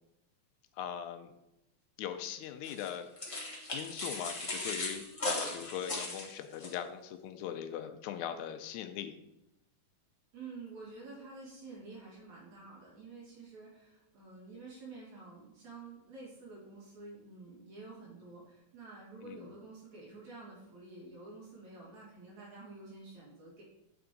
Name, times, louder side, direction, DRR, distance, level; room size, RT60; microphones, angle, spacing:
voice 1, 0.8-1.3 2.0-3.1 3.7-9.1 19.2-19.6, left 9 dB, 85° left, 8 dB, 2.0 m, -40 dB
sound 1, 2.6-6.7, left 2 dB, 55° left, 0.3 m, -38 dB
voice 2, 10.3-23.6, right 3 dB, 65° right, -6 dB, 3.6 m, -49 dB
7.8 x 4.6 x 3.9 m, 0.87 s
omnidirectional pair, 3.4 m